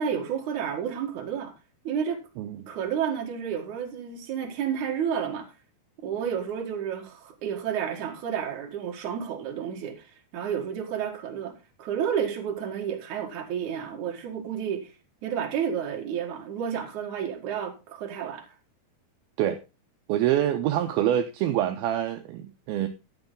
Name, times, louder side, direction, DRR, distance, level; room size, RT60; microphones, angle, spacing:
voice 1, 0.0-1.5 1.8-2.2 2.7-5.5 6.0-14.9 15.2-18.5, right 8 dB, 55° right, 3.1 m, -31 dB
voice 2, 2.4-2.7 19.4-19.6 20.1-22.9, right 11 dB, 80° right, 2.5 m, -26 dB
12.0 x 7.9 x 3.8 m
omnidirectional pair, 4.5 m